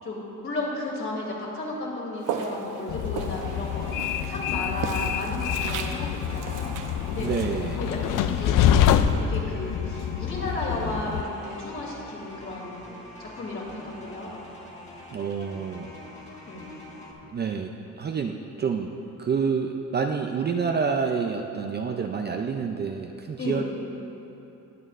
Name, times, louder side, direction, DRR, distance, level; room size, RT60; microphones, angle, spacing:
voice 1, 0.0-3.9 4.3-6.7 7.1-7.3 7.7-12.8 13.2-14.4 16.5-16.7 23.4-23.6, left 2 dB, 40° left, -4 dB, 2.7 m, -33 dB
Walk footsteps, 2.2-9.3, right 6 dB, 70° right, 0.8 m, -37 dB
Train, 2.9-11.2, left 9 dB, 75° left, 0.5 m, -26 dB
sound 1, 3.4-17.1, left 1 dB, 20° left, 1.5 m, -45 dB
voice 2, 7.2-7.8 15.1-15.9 17.3-23.6, right 5 dB, 30° right, 4 dB, 0.4 m, -28 dB
20.0 x 8.6 x 2.5 m, 2.9 s
cardioid pair, 145°, 33 cm